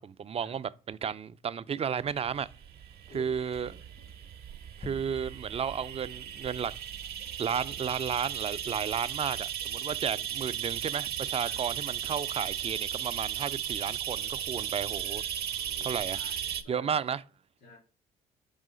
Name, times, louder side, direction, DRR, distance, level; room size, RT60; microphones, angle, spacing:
voice 1, 0.0-2.5 3.1-3.8 4.8-6.7 7.4-15.2 15.8-16.2 16.7-17.2, right 7 dB, 35° right, 0.4 m, -33 dB
sound 1, 2.3-16.6, right 9 dB, 60° right, 0.7 m, -36 dB
voice 2, 3.6-4.1 10.0-10.2 11.5-11.6 12.0-12.2 15.6-16.9 17.6-17.8, left 3 dB, 75° left, 3.6 m, -53 dB
sound 2, 4.8-7.4, left 2 dB, 30° left, 0.7 m, -49 dB
5.6 x 3.7 x 5.0 m
supercardioid pair, 70°, 18 cm